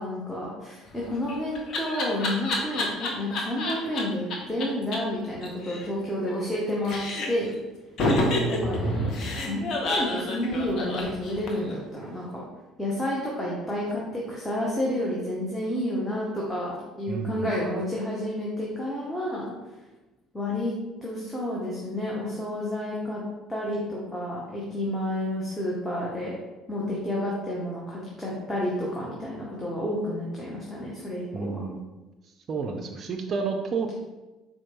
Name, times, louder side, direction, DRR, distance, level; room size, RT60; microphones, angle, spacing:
voice 1, 0.0-7.0 7.3-7.5 8.5-8.9 9.4-12.4 12.8-19.5 20.3-20.7 21.0-23.2 23.5-26.3 26.7-31.7, left 1 dB, 10° left, -5 dB, 0.8 m, -30 dB
Laughter, 0.9-4.0 4.3-4.4 4.6-4.7 4.9-5.0 5.3-6.6 6.8-7.5 8.0-11.7, left 2 dB, 55° left, 0.6 m, -29 dB
voice 2, 8.0-8.8 17.1-17.5 31.3-31.8 32.5-33.9, right 4 dB, 45° right, 4 dB, 0.4 m, -30 dB
sound 1, 8.4-9.6, right 1 dB, 35° left, 1.0 m, -31 dB
4.3 x 2.2 x 2.9 m, 1.1 s
figure-of-eight pair, 55°, 0 cm